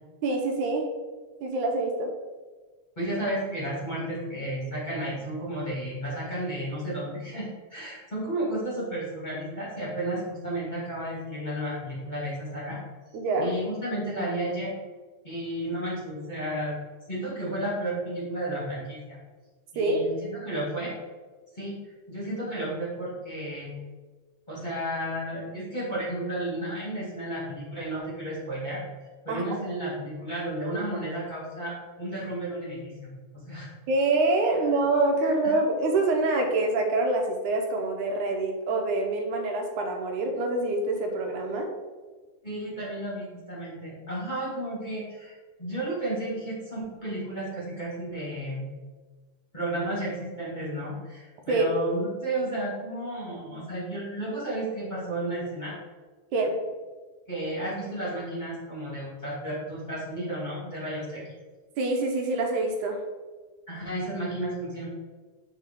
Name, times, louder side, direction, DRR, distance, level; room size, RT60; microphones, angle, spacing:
voice 1, 0.2-0.9 1.4-2.1 13.1-13.5 19.8-20.0 29.3-29.4 33.9-41.7 51.5-51.7 56.3-56.6 61.8-63.0, right 2 dB, 80° right, 2 dB, 2.3 m, -26 dB
voice 2, 3.0-12.8 13.4-14.7 15.2-16.8 17.1-19.2 19.7-20.9 21.5-21.7 22.1-23.7 24.5-28.8 29.2-33.7 35.2-35.5 42.4-48.7 49.5-55.7 57.3-61.2 63.7-64.8, right 1 dB, 15° left, -8 dB, 2.0 m, -32 dB
8.6 x 4.7 x 3.7 m, 1.3 s
omnidirectional pair, 3.5 m